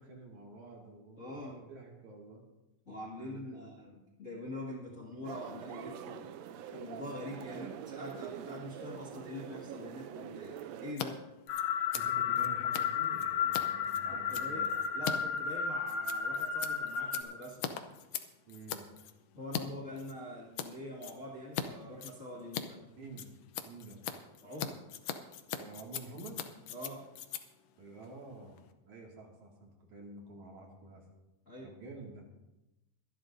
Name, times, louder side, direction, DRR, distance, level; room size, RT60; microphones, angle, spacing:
voice 1, 0.0-2.4 3.2-3.7 4.7-4.9 11.9-14.8 18.5-18.8 23.0-23.3 23.6-24.0 25.5-26.4 27.8-31.0 31.6-32.2, right 2 dB, 65° right, -1 dB, 3.4 m, -49 dB
voice 2, 1.2-1.6 2.9-6.3 6.7-11.2 13.9-17.7 19.3-22.8 24.4-24.8 26.7-27.1 31.5-31.7, left 1 dB, 30° left, -4 dB, 1.7 m, -44 dB
sound 1, 5.2-11.0, right 9 dB, 80° right, 1.5 m, -45 dB
Scissors, 10.9-11.1 11.3-19.6 20.0-20.7 21.0-21.7 21.9-28.7, left 9 dB, 85° left, 1.3 m, -41 dB
sound 2, 11.5-17.2, left 7 dB, 65° left, 2.0 m, -33 dB
24.0 x 11.0 x 2.7 m, 0.97 s
omnidirectional pair, 3.8 m